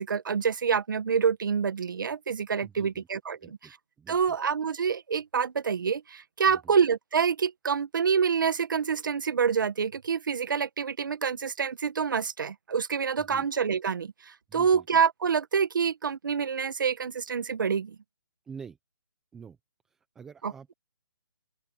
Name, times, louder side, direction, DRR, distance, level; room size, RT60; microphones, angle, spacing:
voice 1, 0.0-3.8 4.1-18.0 20.4-20.5, right 6 dB, 50° right, 1.3 m, -27 dB
voice 2, 2.6-3.1 3.4-3.7 4.0-4.4 6.5-6.7 13.2-13.5 14.5-15.0 18.5-18.8 19.3-19.6 19.9-20.7, right 6 dB, 5° right, 0.6 m, -47 dB
open air
hypercardioid pair, 175°, 13 cm